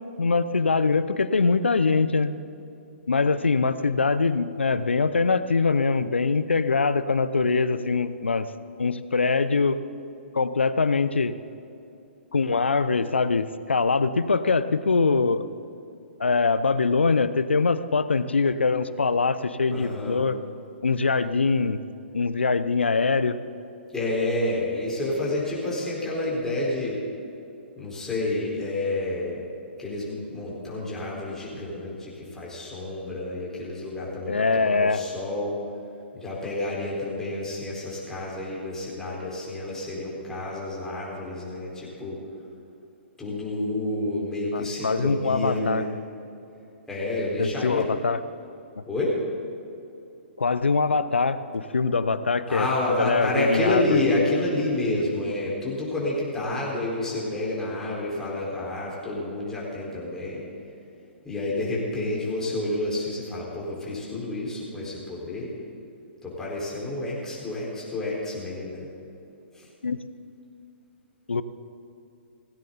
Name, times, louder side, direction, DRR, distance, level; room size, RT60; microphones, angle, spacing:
voice 1, 0.2-2.3 3.1-8.5 8.8-9.8 10.3-11.3 12.3-15.4 16.2-20.4 20.8-21.8 22.1-23.4 34.3-35.0 44.5-45.9 47.4-48.2 48.8-48.9 50.4-52.7 53.0-54.0 69.8-70.0 71.3-71.4, left 4 dB, 75° left, 14 dB, 0.7 m, -23 dB
voice 2, 19.7-20.2 23.9-27.0 27.8-29.4 29.8-35.6 36.1-42.2 43.2-45.9 46.9-47.9 48.9-49.2 52.5-60.4 61.2-65.5 66.2-68.9 69.6-69.7, left 2 dB, 10° left, -6 dB, 4.6 m, -29 dB
17.5 x 16.5 x 4.1 m, 2.8 s
figure-of-eight pair, 120°, 6 cm